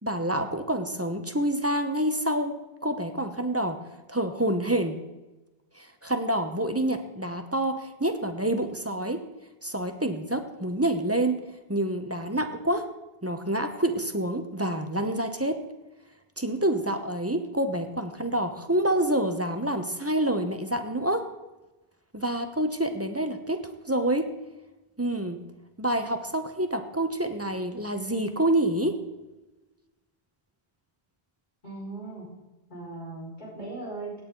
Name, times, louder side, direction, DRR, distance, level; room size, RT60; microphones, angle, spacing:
voice 1, 0.0-3.8 4.1-5.0 5.8-9.2 9.6-11.4 11.7-12.9 13.2-15.6 16.4-21.2 22.1-24.3 25.0-25.4 25.8-29.0, right 1 dB, 15° right, 7 dB, 0.8 m, -27 dB
voice 2, 31.6-32.3 32.7-34.2, right 3 dB, 45° left, -6 dB, 5.2 m, -38 dB
17.0 x 8.8 x 3.9 m, 1.1 s
omnidirectional pair, 1.1 m